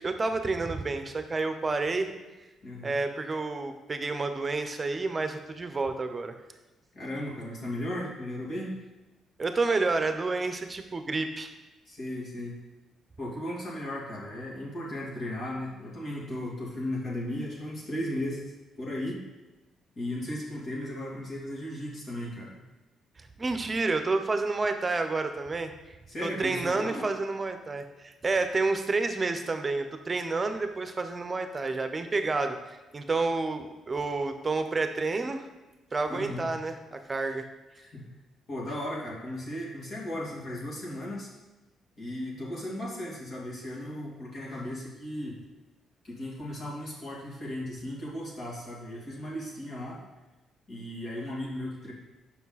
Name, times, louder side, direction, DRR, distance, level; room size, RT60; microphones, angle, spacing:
voice 1, 0.0-2.1 2.8-6.4 9.4-11.5 23.4-25.7 26.2-32.6 32.9-35.5 35.9-37.5, right 3 dB, 30° right, 7 dB, 0.8 m, -29 dB
voice 2, 2.6-3.0 6.9-8.7 11.9-12.6 13.2-18.4 18.8-19.2 20.0-22.6 26.1-27.0 36.1-36.5 37.8-38.0 38.5-41.3 42.0-45.4 46.0-50.0 50.7-51.9, left 1 dB, 50° left, -5 dB, 2.7 m, -36 dB
7.1 x 5.7 x 4.1 m, 1.1 s
cardioid pair, 90°, 0 cm